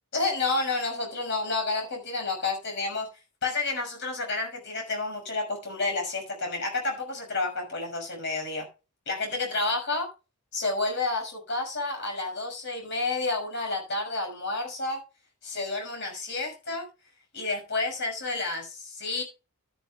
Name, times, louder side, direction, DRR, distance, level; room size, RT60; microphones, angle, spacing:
voice 1, 0.1-3.1 3.4-8.7 9.1-10.1 10.5-15.0 15.4-16.9 17.3-19.2, left 3 dB, 50° left, 2 dB, 6.0 m, -30 dB
12.5 x 11.5 x 2.4 m, 0.30 s
head